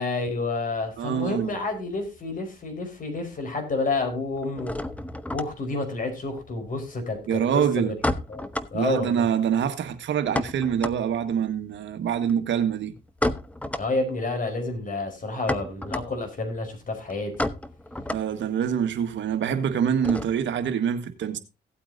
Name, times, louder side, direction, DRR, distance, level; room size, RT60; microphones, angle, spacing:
voice 1, 0.0-4.8 5.3-7.9 8.3-8.4 8.7-9.3 13.8-17.3, left 3 dB, 45° left, 4.7 m, -29 dB
sound 1, 0.8-2.4 2.6-3.4 3.6-20.6, left 1 dB, 5° left, 0.8 m, -34 dB
voice 2, 1.0-1.5 7.3-7.9 8.7-12.9 18.1-21.4, right 8 dB, 70° right, 1.6 m, -25 dB
17.0 x 8.6 x 2.7 m
cardioid pair, 90°, 20 cm